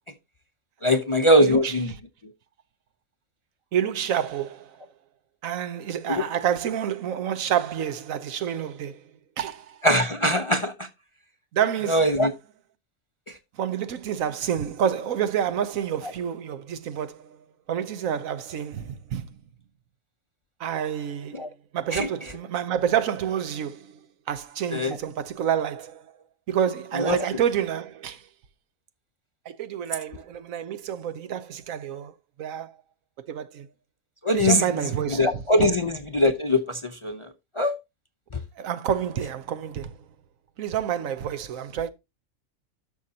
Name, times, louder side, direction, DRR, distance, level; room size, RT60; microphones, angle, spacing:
voice 1, 0.8-1.9 6.1-6.2 9.8-10.9 11.9-12.3 21.3-21.5 21.9-22.1 24.7-25.0 27.0-27.2 34.2-34.7 35.1-37.3 37.6-37.8, left 1 dB, 35° left, 0.5 m, -21 dB
voice 2, 1.4-1.7 3.7-4.8 5.4-9.0 9.4-9.8 11.5-12.1 13.5-19.3 20.6-21.4 21.7-24.0 24.3-26.1 26.5-28.3 29.4-32.1 32.4-32.7 33.3-33.7 34.3-35.7 38.6-40.1 40.6-41.9, right 9 dB, 80° right, 1.2 m, -28 dB
12.0 x 6.4 x 2.8 m
omnidirectional pair, 1.4 m